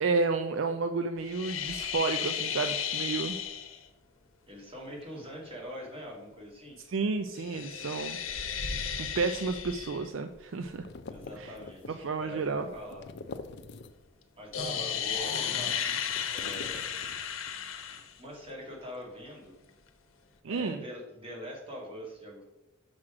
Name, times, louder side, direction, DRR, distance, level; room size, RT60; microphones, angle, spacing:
voice 1, 0.0-3.4 6.9-8.2 9.0-10.9 11.4-11.5 12.0-12.7 20.4-20.8, right 4 dB, 65° right, 8 dB, 0.4 m, -31 dB
sound 1, 1.2-3.8 7.3-10.1 14.5-18.1, left 8 dB, 80° left, 0.8 m, -34 dB
voice 2, 4.5-6.8 11.1-13.0 14.4-16.0 16.3-16.8 17.8-17.9 18.2-19.5 20.5-22.4, equal, 30° right, -2 dB, 2.1 m, -43 dB
sound 2, 10.3-14.2 14.5-17.6, left 3 dB, 55° left, 0.5 m, -47 dB
6.2 x 6.0 x 4.8 m, 1.0 s
head